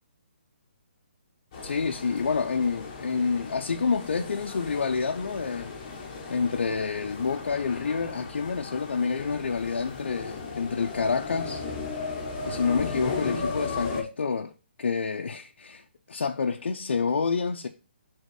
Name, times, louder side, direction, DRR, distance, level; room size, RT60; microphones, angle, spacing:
sound 1, 1.5-14.0, left 4 dB, 25° left, 1.1 m, -36 dB
voice 1, 1.6-5.7 6.3-12.1 12.5-14.5 14.8-17.7, left 5 dB, 80° left, 0.6 m, -28 dB
6.6 x 3.7 x 4.7 m
hypercardioid pair, 175°, 6 cm